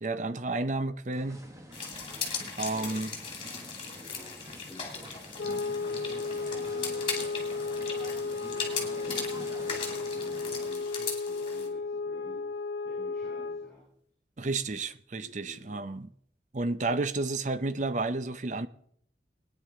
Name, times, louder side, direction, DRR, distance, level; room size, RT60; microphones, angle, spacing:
voice 1, 0.0-1.4 1.8-2.0 2.6-3.1 5.5-5.6 14.4-16.1 16.5-18.7, right 3 dB, 45° right, 0.6 m, -31 dB
sound 1, 1.1-10.8, equal, 20° right, 1.3 m, -47 dB
sound 2, 1.7-11.7, left 5 dB, 30° left, 2.4 m, -38 dB
voice 2, 3.9-5.1 5.7-7.2 8.2-13.9 15.2-15.8, left 1 dB, 5° left, 7.1 m, -51 dB
sound 3, 5.4-13.7, left 4 dB, 80° left, 0.5 m, -34 dB
20.5 x 9.6 x 3.8 m
head